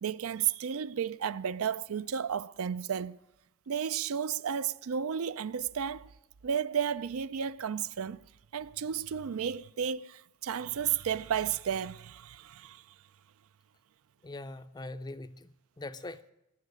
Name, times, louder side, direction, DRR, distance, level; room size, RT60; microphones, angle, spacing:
voice 1, 0.0-3.2 3.7-6.1 6.4-8.2 8.5-12.8, right 8 dB, 70° right, 0.4 m, -33 dB
voice 2, 14.2-16.3, left 2 dB, 20° left, 0.5 m, -42 dB
19.0 x 7.2 x 9.6 m
head